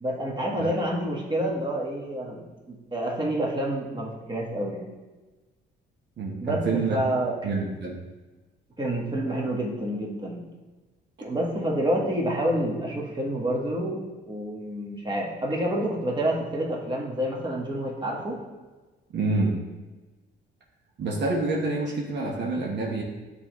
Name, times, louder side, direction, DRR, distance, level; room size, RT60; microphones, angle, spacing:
voice 1, 0.0-4.9 6.4-7.3 8.8-10.5 11.2-18.4, right 1 dB, 25° right, -2 dB, 1.4 m, -28 dB
voice 2, 6.2-7.0 7.4-8.0 19.1-19.5 21.0-23.0, right 3 dB, 60° right, -1 dB, 1.0 m, -27 dB
8.3 x 4.1 x 3.1 m, 1.2 s
cardioid pair, 90°, 20 cm